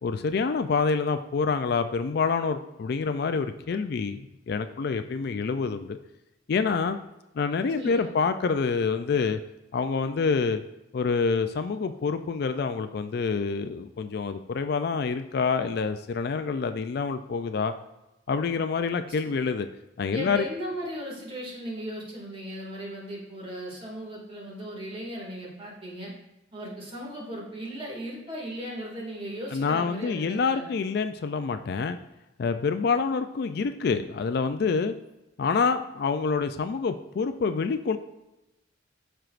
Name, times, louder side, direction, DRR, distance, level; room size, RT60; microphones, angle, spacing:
voice 1, 0.0-6.0 6.5-7.0 7.3-9.4 9.7-10.6 10.9-17.7 18.3-19.7 20.0-20.5 29.5-32.0 32.4-35.0 35.4-38.0, left 5 dB, 55° left, 9 dB, 0.4 m, -27 dB
voice 2, 7.7-8.2 20.1-26.1 26.5-30.7, equal, 30° right, -3 dB, 2.1 m, -37 dB
13.0 x 4.5 x 2.5 m, 0.96 s
head